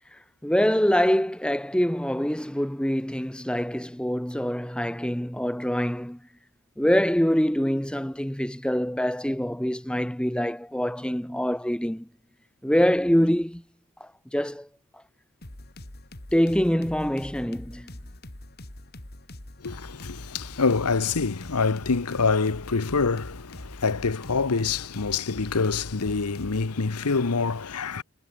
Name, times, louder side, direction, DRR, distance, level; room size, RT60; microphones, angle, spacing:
voice 1, 0.4-6.2 6.8-12.1 12.6-13.6 14.0-14.7 16.3-17.9, equal, 5° left, 1.0 m, -25 dB
sound 1, 15.4-26.7, left 1 dB, 45° left, 2.5 m, -43 dB
voice 2, 19.6-28.0, left 4 dB, 85° left, 1.0 m, -26 dB
head